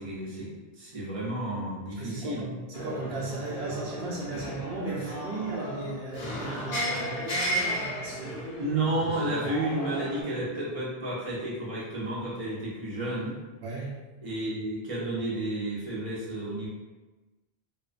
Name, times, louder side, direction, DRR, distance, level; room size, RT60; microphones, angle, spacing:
voice 1, 0.0-2.4 8.6-13.4 14.2-16.7, right 1 dB, 35° right, -6 dB, 0.7 m, -31 dB
voice 2, 1.9-8.6 9.2-9.5 13.6-14.0, right 2 dB, 80° right, -5 dB, 0.8 m, -36 dB
sound 1, 2.7-10.2, equal, 50° left, 0.6 m, -34 dB
2.5 x 2.1 x 2.5 m, 1.2 s
omnidirectional pair, 1.1 m